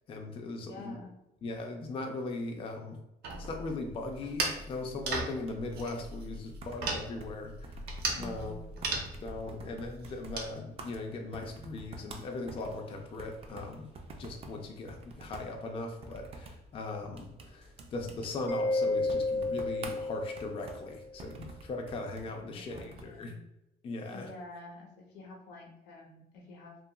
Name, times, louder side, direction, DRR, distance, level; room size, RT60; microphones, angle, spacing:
voice 1, 0.1-1.0 1.4-3.0 3.4-7.7 8.2-8.5 9.2-23.3 23.8-24.3, left 2 dB, 35° left, 3 dB, 0.4 m, -39 dB
voice 2, 0.6-1.1 8.2-8.7 22.5-23.3 24.1-26.8, left 2 dB, 85° left, 0 dB, 0.8 m, -48 dB
sound 1, 3.2-10.5, right 3 dB, 70° right, 0.7 m, -37 dB
sound 2, 5.3-23.2, right 2 dB, 35° right, 0.4 m, -49 dB
Mallet percussion, 18.5-21.0, left 2 dB, 10° left, 0.8 m, -31 dB
2.7 x 2.4 x 2.3 m, 0.88 s
cardioid pair, 110°, 17 cm